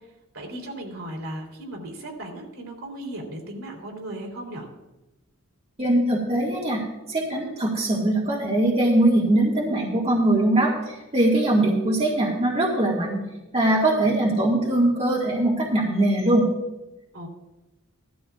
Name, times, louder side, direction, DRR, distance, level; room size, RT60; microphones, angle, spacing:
voice 1, 0.3-4.7 17.1-17.3, right 1 dB, 70° right, -1 dB, 3.1 m, -36 dB
voice 2, 5.8-6.8 7.1-13.2 13.5-16.5, right 1 dB, 30° right, -4 dB, 1.8 m, -21 dB
16.5 x 13.0 x 2.4 m, 1.0 s
head